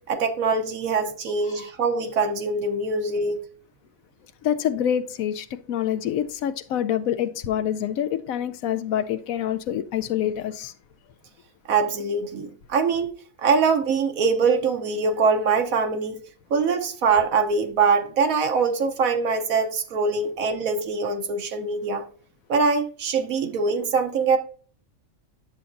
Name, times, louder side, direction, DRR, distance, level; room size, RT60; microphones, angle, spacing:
voice 1, 0.1-3.4 11.7-13.1 13.4-16.2 16.5-22.0 22.5-24.4, right 4 dB, 80° right, 1.3 m, -23 dB
voice 2, 4.4-10.7, left 10 dB, 85° left, 1.0 m, -26 dB
10.0 x 7.0 x 2.5 m
omnidirectional pair, 1.4 m